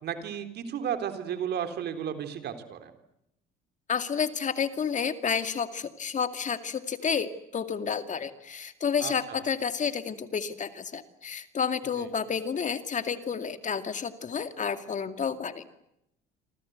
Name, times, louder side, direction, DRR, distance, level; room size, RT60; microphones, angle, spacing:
voice 1, 0.0-2.9 9.0-9.4 12.0-12.1, right 8 dB, 60° right, 8 dB, 3.8 m, -34 dB
voice 2, 3.9-15.6, left 6 dB, 40° left, 9 dB, 2.3 m, -30 dB
27.0 x 26.0 x 8.1 m, 0.84 s
supercardioid pair, 75°, 19 cm